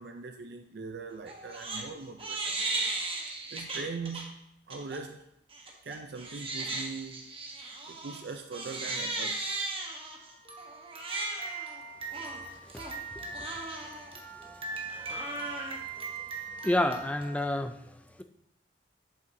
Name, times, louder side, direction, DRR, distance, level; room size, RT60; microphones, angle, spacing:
voice 1, 0.0-2.5 3.5-4.3 4.7-5.2 5.8-7.3 7.9-9.5, right 4 dB, 65° right, 5 dB, 0.5 m, -41 dB
Crying sobbing, 1.3-1.8 2.2-4.2 4.7-5.0 5.5-17.5, right 3 dB, 30° right, 1.0 m, -37 dB
voice 2, 16.6-17.8, left 1 dB, 10° left, 7 dB, 0.4 m, -29 dB
8.3 x 7.6 x 2.7 m, 0.80 s
head